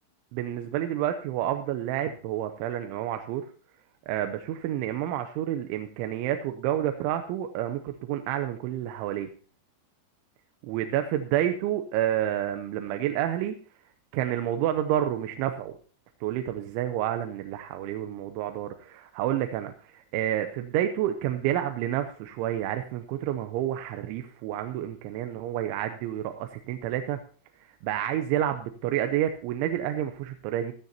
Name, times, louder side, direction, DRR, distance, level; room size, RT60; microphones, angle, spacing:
voice 1, 0.3-3.5 4.1-9.3 10.6-13.6 14.1-15.8 16.2-27.2 27.6-30.7, right 11 dB, 85° right, 7 dB, 3.0 m, -29 dB
16.0 x 13.5 x 2.8 m, 0.41 s
omnidirectional pair, 5.6 m